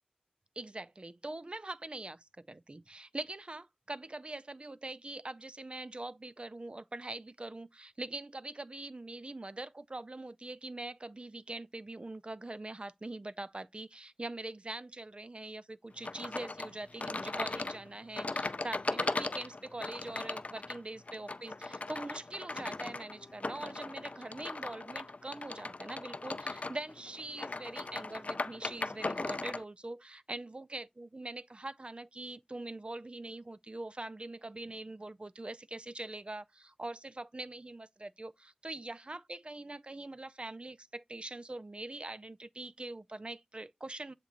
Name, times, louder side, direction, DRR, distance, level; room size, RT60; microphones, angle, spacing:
voice 1, 0.6-44.1, right 2 dB, 45° right, 0.4 m, -43 dB
sound 1, 16.0-29.6, left 3 dB, 60° left, 0.4 m, -38 dB
8.3 x 2.9 x 3.9 m
wide cardioid pair, 50°, 3 cm